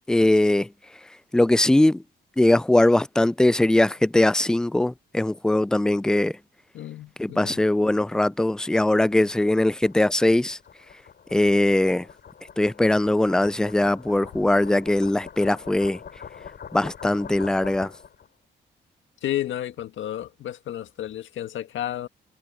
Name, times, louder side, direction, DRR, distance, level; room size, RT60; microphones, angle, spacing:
voice 1, 0.1-0.7 1.3-2.0 2.4-6.3 7.2-10.6 11.3-12.1 12.6-16.0 16.7-17.9, left 1 dB, 5° left, 0.3 m, -21 dB
voice 2, 6.7-7.6 19.2-22.1, left 12 dB, 75° left, 1.8 m, -32 dB
sound 1, 8.3-18.3, left 7 dB, 55° left, 6.9 m, -44 dB
cardioid pair, 90°, 20 cm